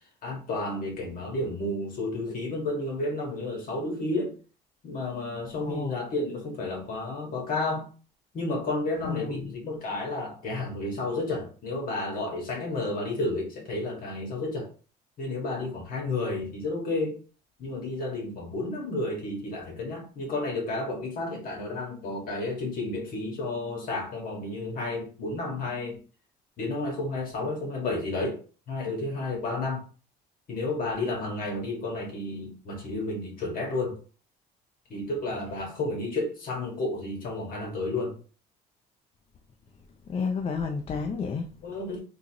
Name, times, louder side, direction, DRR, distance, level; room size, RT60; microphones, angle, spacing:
voice 1, 0.2-4.3 4.8-7.9 8.3-14.7 15.2-17.2 17.6-26.0 26.6-28.4 28.7-29.8 30.5-34.0 34.9-38.1 41.6-42.0, left 2 dB, 55° left, 1.7 m, -31 dB
voice 2, 5.6-6.0 9.0-9.5 40.1-41.5, left 5 dB, 35° left, 0.5 m, -31 dB
3.8 x 2.6 x 2.9 m
cardioid pair, 110°, 17 cm